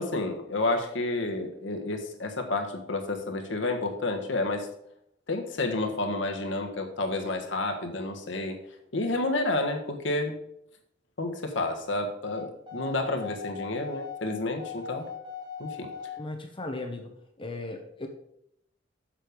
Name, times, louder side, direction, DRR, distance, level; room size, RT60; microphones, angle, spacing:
voice 1, 0.0-4.7 5.3-8.6 8.9-10.3 11.2-15.1 15.6-15.9, left 2 dB, 70° left, 4 dB, 1.4 m, -30 dB
sound 1, 12.2-16.2, left 6 dB, 25° right, 3.0 m, -40 dB
voice 2, 16.2-18.1, left 2 dB, 25° left, 4 dB, 1.0 m, -37 dB
7.6 x 6.6 x 5.1 m, 0.75 s
head